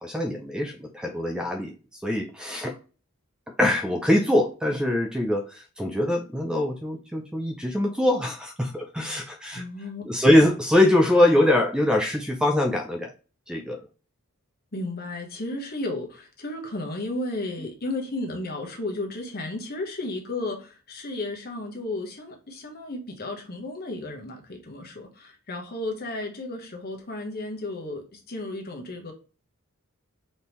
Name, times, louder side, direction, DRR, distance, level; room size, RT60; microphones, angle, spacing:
voice 1, 0.0-2.8 3.6-9.6 10.0-13.1 13.5-13.9 17.6-17.7, left 1 dB, 5° right, 0.4 m, -23 dB
voice 2, 9.5-10.0 14.7-29.1, left 2 dB, 45° left, 1.1 m, -33 dB
4.2 x 3.5 x 3.0 m
head